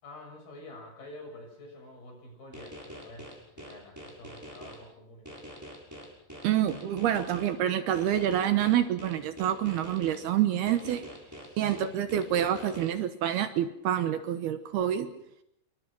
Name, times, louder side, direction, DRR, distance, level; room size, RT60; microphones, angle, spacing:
voice 1, 0.0-5.3 11.5-11.9, left 1 dB, 55° left, 3 dB, 8.5 m, -48 dB
sound 1, 2.5-4.8 5.3-7.5 7.9-10.2 10.7-12.9, equal, 5° right, 6.0 m, -45 dB
voice 2, 6.4-11.1 11.6-15.1, right 11 dB, 70° right, 9 dB, 2.9 m, -27 dB
27.5 x 23.5 x 6.2 m, 0.76 s
omnidirectional pair, 5.1 m